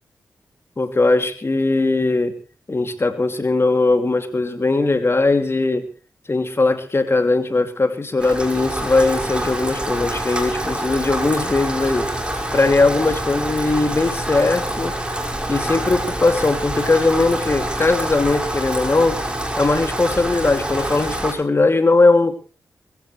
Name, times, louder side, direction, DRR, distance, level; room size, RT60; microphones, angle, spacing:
voice 1, 0.8-2.4 2.7-5.9 6.3-12.1 12.5-14.9 15.5-19.2 19.6-22.4, left 3 dB, 40° left, 7 dB, 2.9 m, -19 dB
Rain, 8.2-21.3, right 1 dB, 15° right, 5.7 m, -26 dB
21.5 x 16.0 x 3.3 m, 0.35 s
cardioid pair, 45°, 7 cm